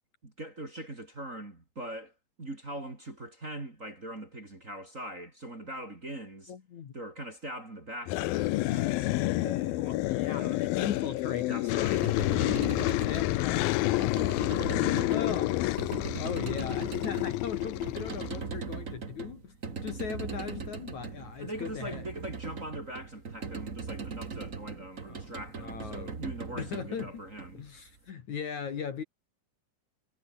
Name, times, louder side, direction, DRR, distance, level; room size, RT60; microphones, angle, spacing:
voice 1, 0.2-2.1 2.4-6.5 6.9-9.1 10.3-10.7 11.5-12.2 21.4-27.6, right 1 dB, 20° right, 3.3 m, -42 dB
voice 2, 6.5-6.9 9.0-22.0 25.1-25.3 25.6-26.1 26.5-27.2 27.6-29.0, left 7 dB, 50° left, 3.1 m, -39 dB
sound 1, 8.1-18.4, left 18 dB, 80° left, 2.4 m, -29 dB
sound 2, 11.8-28.0, right 5 dB, 40° right, 1.1 m, -40 dB
omnidirectional pair, 4.6 m